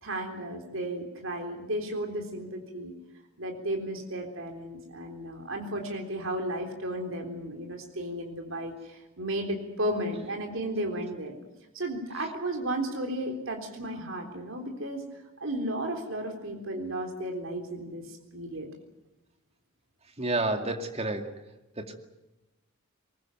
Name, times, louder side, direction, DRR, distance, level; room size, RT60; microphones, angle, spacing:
voice 1, 0.0-2.9 3.4-11.4 11.7-15.0 15.4-18.7, right 1 dB, 70° right, 3 dB, 3.7 m, -34 dB
voice 2, 20.2-21.3 21.8-21.9, right 2 dB, 30° right, 5 dB, 2.3 m, -30 dB
23.0 x 20.5 x 9.1 m, 1.0 s
head